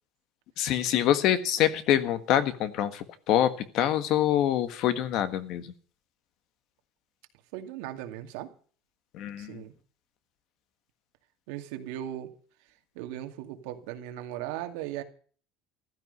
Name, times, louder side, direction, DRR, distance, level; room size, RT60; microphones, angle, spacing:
voice 1, 0.6-5.7 9.1-9.6, left 11 dB, 50° left, 12 dB, 1.5 m, -25 dB
voice 2, 7.5-8.5 9.4-9.7 11.5-12.3 13.0-15.0, right 12 dB, 85° right, 6 dB, 2.3 m, -37 dB
14.5 x 13.0 x 5.5 m, 0.43 s
cardioid pair, 170°, 0 cm